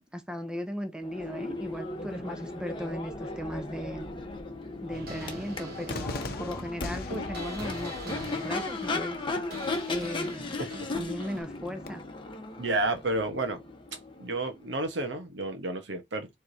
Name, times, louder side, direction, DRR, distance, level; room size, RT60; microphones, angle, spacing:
voice 1, 0.0-4.1 4.8-9.2 9.9-10.6 10.9-12.0, equal, 5° right, 0.7 m, -37 dB
Crowd / Race car auto racing / Accelerating revving vroom, 1.0-14.8, left 3 dB, 25° left, 1.0 m, -36 dB
sound 1, 4.9-11.4, right 1 dB, 55° right, 2.3 m, -43 dB
Cheering / Fireworks, 5.9-11.9, left 3 dB, 55° left, 0.8 m, -42 dB
voice 2, 12.6-13.6 14.2-16.3, right 2 dB, 75° right, 1.2 m, -31 dB
4.8 x 3.6 x 2.7 m
head